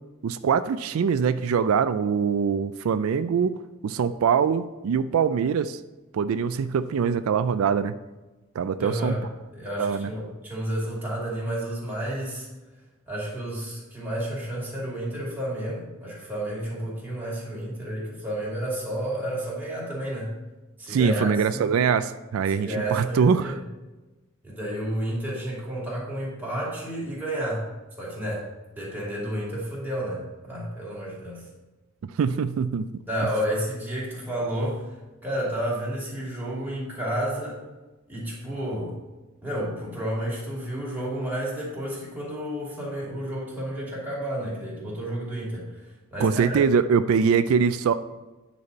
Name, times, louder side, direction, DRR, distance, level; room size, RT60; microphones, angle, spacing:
voice 1, 0.2-3.5 3.8-5.8 6.1-7.9 8.6-9.1 9.8-10.1 20.9-23.5 32.0-32.9 46.2-47.9, right 6 dB, 85° right, 12 dB, 0.4 m, -23 dB
voice 2, 8.8-9.2 9.5-12.5 13.1-20.3 20.8-21.7 22.5-23.6 24.4-27.7 28.0-28.5 28.8-31.5 33.0-34.8 35.2-37.6 38.1-39.0 39.4-46.6, right 1 dB, 10° right, -6 dB, 2.7 m, -31 dB
9.5 x 4.2 x 5.3 m, 1.1 s
head